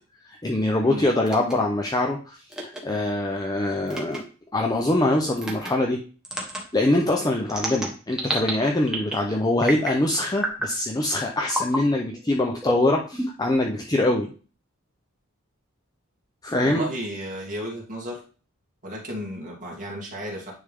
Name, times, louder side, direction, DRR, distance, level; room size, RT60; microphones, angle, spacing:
voice 1, 0.3-4.2 4.5-6.0 6.7-14.3 16.4-16.9, left 1 dB, 20° left, 1 dB, 0.6 m, -23 dB
sound 1, 1.3-1.5 2.5-2.8 3.9-4.2 5.4-5.7 6.3-6.6 7.5-8.5 8.9-9.3 9.6-10.0 10.4-10.7 11.5-11.8 12.6-13.5, right 1 dB, 5° right, 1.3 m, -29 dB
voice 2, 16.6-18.2 18.8-20.5, equal, 35° right, -3 dB, 2.5 m, -33 dB
9.8 x 3.5 x 3.6 m, 0.37 s
head